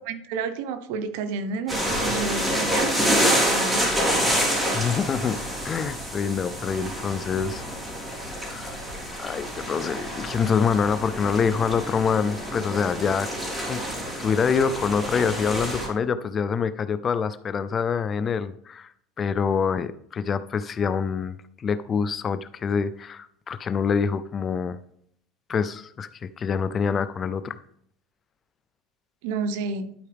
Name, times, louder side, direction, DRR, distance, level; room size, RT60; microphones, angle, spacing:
voice 1, 0.1-4.2 29.2-29.9, right 5 dB, 75° right, 10 dB, 0.8 m, -31 dB
sound 1, 1.7-15.9, equal, 10° right, 3.3 m, -27 dB
voice 2, 4.7-5.4 5.6-7.6 8.4-8.8 9.2-13.3 13.6-13.9 14.2-18.9 19.2-24.8 25.5-27.6, left 6 dB, 30° left, 14 dB, 0.4 m, -26 dB
11.5 x 4.7 x 3.4 m, 0.66 s
supercardioid pair, 125°, 0 cm